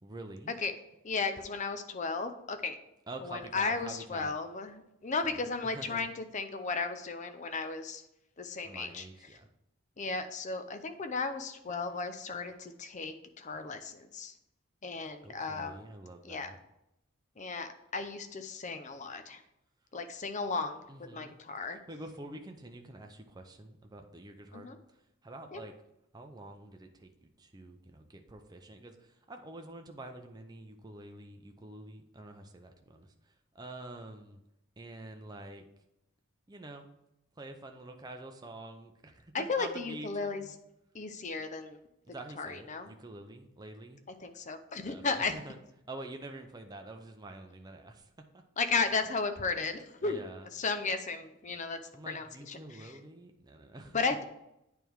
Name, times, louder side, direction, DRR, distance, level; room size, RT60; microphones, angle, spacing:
voice 1, 0.0-0.5 3.1-4.4 5.2-6.1 8.6-9.5 15.2-16.6 20.9-25.0 25.2-25.7 26.1-34.4 34.8-35.7 36.5-36.9 37.4-40.6 42.0-44.0 44.9-45.6 45.9-48.1 50.0-50.5 51.9-54.0, right 2 dB, 20° right, 4 dB, 0.6 m, -47 dB
voice 2, 1.0-2.8 3.2-8.0 8.4-9.0 10.0-14.3 14.8-15.9 16.2-16.5 17.4-19.4 19.9-20.8 21.1-21.8 24.5-24.8 25.5-25.6 39.3-40.4 40.9-41.8 42.4-42.9 44.2-45.3 48.6-50.2 50.5-51.8 52.1-52.9 53.9-54.2, left 4 dB, 35° left, 8 dB, 0.6 m, -35 dB
9.1 x 3.4 x 4.6 m, 0.85 s
head